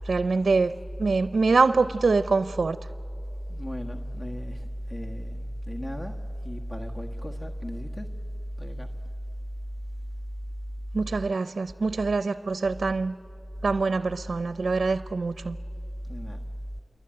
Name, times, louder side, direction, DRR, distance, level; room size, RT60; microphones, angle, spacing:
voice 1, 0.1-2.8 10.9-13.2 13.6-15.6, right 4 dB, 65° right, 0.5 m, -24 dB
voice 2, 3.5-6.1 6.4-8.1 8.6-8.9 16.1-16.4, equal, 30° left, 1.5 m, -34 dB
28.0 x 23.5 x 8.9 m
cardioid pair, 45°, 0 cm